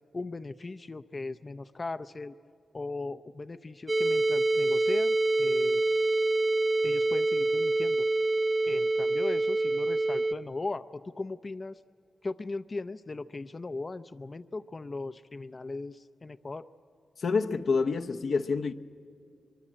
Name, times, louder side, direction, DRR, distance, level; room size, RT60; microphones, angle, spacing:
voice 1, 0.1-2.3 2.7-5.8 6.8-8.1 8.7-11.8 12.2-16.6, left 3 dB, 40° left, 0.5 m, -38 dB
sound 1, 3.9-10.3, right 2 dB, 35° right, 0.8 m, -26 dB
voice 2, 17.2-18.7, left 4 dB, 75° left, 0.8 m, -27 dB
23.5 x 23.0 x 8.6 m
cardioid pair, 60°, 0 cm